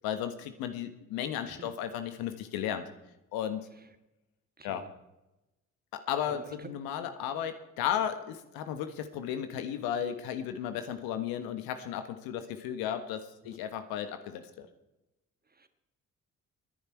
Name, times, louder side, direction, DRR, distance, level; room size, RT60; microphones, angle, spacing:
voice 1, 0.0-2.8 3.3-3.7 4.6-4.9 5.9-14.7, left 9 dB, 60° left, 9 dB, 1.4 m, -34 dB
voice 2, 4.6-4.9 6.3-6.7 13.4-13.6 15.5-15.7, right 4 dB, 25° right, 9 dB, 1.7 m, -49 dB
29.0 x 10.5 x 4.5 m, 0.97 s
figure-of-eight pair, 45°, 39 cm